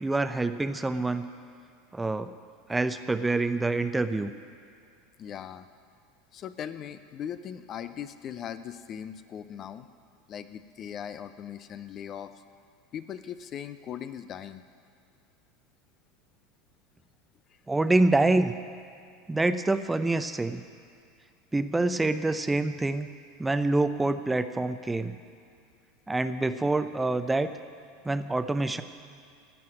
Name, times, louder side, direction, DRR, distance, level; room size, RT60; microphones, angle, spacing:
voice 1, 0.0-1.2 1.9-2.3 2.7-4.3 17.7-18.5 19.3-20.6 21.5-23.1 23.4-25.2 26.1-27.5 28.0-28.8, right 2 dB, 10° right, 10 dB, 0.6 m, -26 dB
voice 2, 5.2-5.7 6.3-9.9 10.3-12.3 12.9-14.6 17.5-17.6, left 9 dB, 40° left, 11 dB, 0.6 m, -39 dB
17.0 x 5.8 x 9.8 m, 2.3 s
figure-of-eight pair, 80°, 0 cm